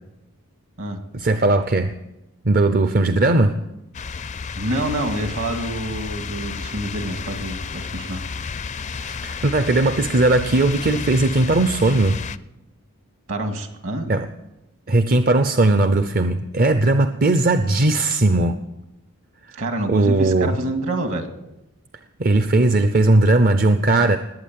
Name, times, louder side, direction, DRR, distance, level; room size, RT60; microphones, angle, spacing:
voice 1, 1.1-1.9 2.4-3.5 9.0-12.2 14.1-14.3 14.9-18.6 19.9-20.5 22.2-24.2, right 2 dB, 40° right, 9 dB, 0.6 m, -18 dB
sound 1, 3.9-12.4, left 5 dB, 35° left, 0.4 m, -32 dB
voice 2, 4.6-8.2 13.3-14.1 19.5-21.3, right 1 dB, 65° right, 6 dB, 2.1 m, -27 dB
20.0 x 8.6 x 7.5 m, 0.94 s
head